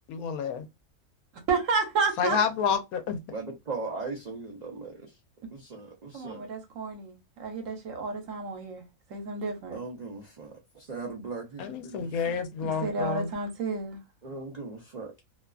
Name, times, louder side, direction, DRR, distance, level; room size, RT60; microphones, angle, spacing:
voice 1, 0.1-0.7 2.2-3.2 11.6-13.3, left 6 dB, 90° left, 1.1 m, -29 dB
voice 2, 1.5-2.4 6.1-8.8 9.1-9.8 12.6-14.0, right 4 dB, 70° right, 1.1 m, -31 dB
voice 3, 3.3-5.2 5.5-6.5 9.7-12.2 14.2-15.1, right 3 dB, 55° right, 0.4 m, -39 dB
2.8 x 2.3 x 2.3 m
omnidirectional pair, 1.5 m